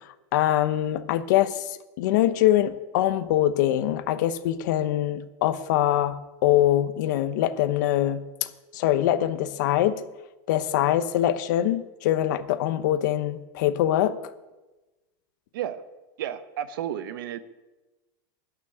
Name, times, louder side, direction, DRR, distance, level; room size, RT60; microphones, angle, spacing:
voice 1, 0.3-10.0 10.5-14.2, left 12 dB, 60° left, 12 dB, 0.9 m, -23 dB
voice 2, 16.2-17.4, right 10 dB, 80° right, 13 dB, 1.0 m, -32 dB
14.0 x 6.1 x 9.9 m, 1.1 s
supercardioid pair, 180°, 11 cm